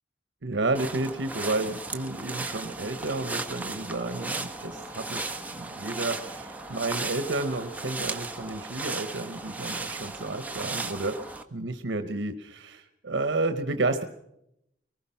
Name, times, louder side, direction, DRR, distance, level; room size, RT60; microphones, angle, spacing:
voice 1, 0.4-11.2 11.5-14.0, right 2 dB, 80° right, 8 dB, 1.0 m, -31 dB
sound 1, 0.7-11.4, right 3 dB, 10° right, 1.2 m, -36 dB
23.5 x 19.5 x 5.7 m, 0.82 s
head